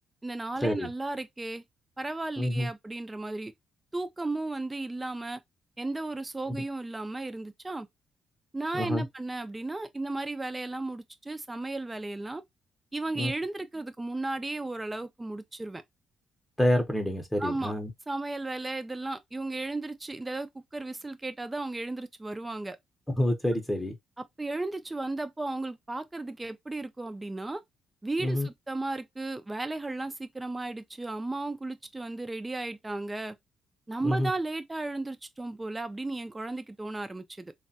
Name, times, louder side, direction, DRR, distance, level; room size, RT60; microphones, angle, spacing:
voice 1, 0.2-1.6 2.0-3.5 3.9-5.4 5.8-7.9 8.5-12.4 12.9-15.8 17.4-17.7 18.1-22.8 24.2-27.6 28.0-33.3 33.9-37.5, right 2 dB, 15° right, 0.4 m, -34 dB
voice 2, 2.4-2.7 8.7-9.0 13.2-13.3 16.6-17.9 23.2-23.9 28.2-28.5 34.0-34.3, left 1 dB, 10° left, 0.7 m, -27 dB
3.2 x 2.2 x 2.6 m
cardioid pair, 90°, 0 cm